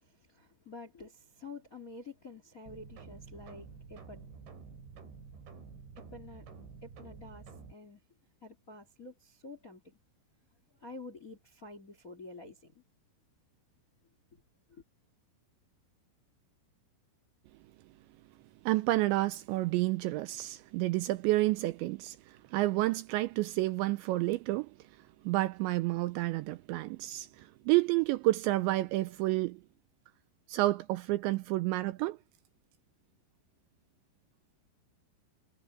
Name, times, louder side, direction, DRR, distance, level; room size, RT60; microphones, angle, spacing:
voice 1, 0.0-4.2 5.9-6.5 6.8-8.0 8.4-10.0 10.8-12.8 14.3-14.4 14.7-14.8, left 3 dB, 35° left, 1.4 m, -49 dB
sound 1, 2.7-7.7, right 5 dB, 65° right, 6.9 m, -50 dB
voice 2, 18.7-24.8 25.2-29.6 30.5-32.2, right 18 dB, 85° right, 2.7 m, -30 dB
omnidirectional pair, 5.7 m